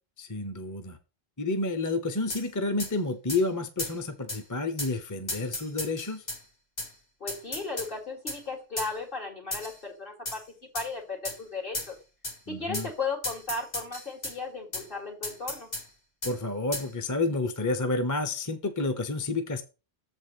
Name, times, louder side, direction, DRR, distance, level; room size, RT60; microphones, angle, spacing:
voice 1, 0.2-1.0 1.4-6.2 12.5-12.9 16.2-19.6, left 2 dB, 20° left, 7 dB, 0.7 m, -30 dB
sound 1, 2.3-2.4 2.8-2.9 3.3-3.4 3.8-4.0 4.3-4.4 4.8-4.9 5.3-6.4 6.8-6.9 7.3-7.9 8.3-8.4 8.8-8.9 9.5-9.8 10.3-10.4 10.8-10.9 11.2-11.4 11.7-11.9 12.2-12.4 12.7-12.9 13.2-14.4 14.7-14.9 15.2-15.9 16.2-16.4 16.7-16.9, left 1 dB, 40° left, 2.2 m, -35 dB
voice 2, 7.2-10.4 10.7-12.0 12.5-15.7, left 3 dB, 60° left, 0 dB, 3.0 m, -35 dB
7.2 x 4.5 x 6.8 m, 0.31 s
omnidirectional pair, 1.0 m